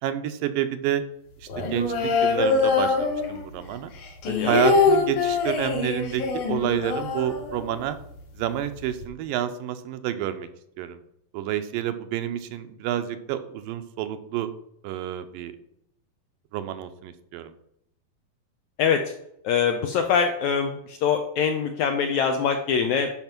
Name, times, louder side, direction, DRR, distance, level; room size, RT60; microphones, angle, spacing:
voice 1, 0.0-1.1 1.4-3.9 4.3-8.0 8.4-10.5 10.8-11.0 11.3-14.5 14.8-15.5 16.5-17.5, right 11 dB, 80° right, 9 dB, 2.3 m, -29 dB
sound 1, 1.5-3.6 3.9-7.9 8.2-8.3 8.5-9.1, left 4 dB, 60° left, 3.1 m, -24 dB
voice 2, 4.2-4.6 18.8-19.1 19.4-23.1, left 6 dB, 75° left, 5 dB, 1.7 m, -24 dB
11.0 x 5.2 x 5.9 m, 0.74 s
omnidirectional pair, 4.1 m